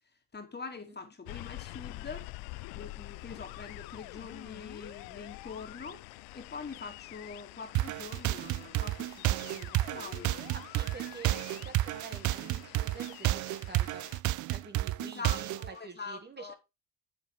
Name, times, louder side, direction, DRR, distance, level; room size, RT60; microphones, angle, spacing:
voice 1, 0.3-2.3 2.7-6.0 6.3-10.4 15.0-16.5, left 4 dB, 25° left, 2.6 m, -44 dB
sound 1, 1.3-14.2, left 22 dB, 65° left, 0.5 m, -47 dB
sound 2, 7.7-15.7, right 17 dB, 50° right, 0.5 m, -31 dB
voice 2, 10.5-14.1 14.5-16.5, right 4 dB, 25° right, 1.8 m, -48 dB
7.4 x 6.7 x 4.9 m
hypercardioid pair, 60°, 38 cm